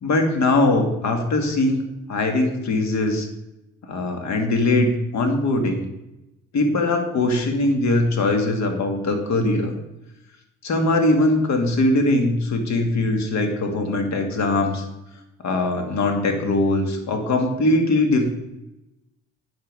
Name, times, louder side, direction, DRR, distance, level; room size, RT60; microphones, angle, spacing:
voice 1, 0.0-1.8 2.1-3.3 3.9-5.9 6.5-9.7 10.6-14.8 15.4-18.3, left 2 dB, 65° left, 4 dB, 1.9 m, -21 dB
9.2 x 7.4 x 4.7 m, 0.93 s
cardioid pair, 90°, 30 cm